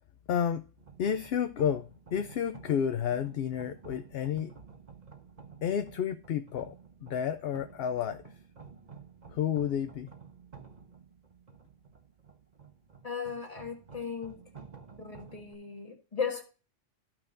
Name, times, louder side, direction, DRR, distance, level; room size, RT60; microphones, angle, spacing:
voice 1, 0.3-0.6 1.0-4.5 5.6-6.8 7.0-8.2 9.3-10.1, left 8 dB, 60° left, 0.7 m, -31 dB
sound 1, 0.8-15.5, right 6 dB, 35° right, 1.2 m, -52 dB
voice 2, 13.0-14.4 15.0-16.4, left 6 dB, 30° left, 1.7 m, -36 dB
14.0 x 5.9 x 2.6 m
omnidirectional pair, 1.3 m